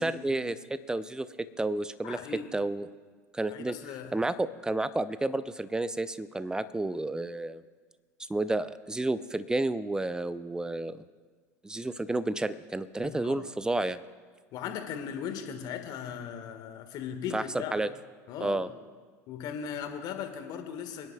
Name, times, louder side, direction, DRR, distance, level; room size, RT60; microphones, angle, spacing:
voice 1, 0.0-2.2 2.5-2.9 3.3-3.7 4.1-7.6 8.3-11.0 11.6-14.0 17.3-17.4 17.7-17.9 18.4-18.7, right 2 dB, 10° right, 15 dB, 0.6 m, -31 dB
voice 2, 2.0-2.5 3.5-4.2 13.0-13.5 14.5-17.7 18.3-18.6 19.3-21.1, left 8 dB, 50° left, 6 dB, 1.6 m, -38 dB
26.0 x 10.5 x 2.3 m, 1.5 s
figure-of-eight pair, 75°, 9 cm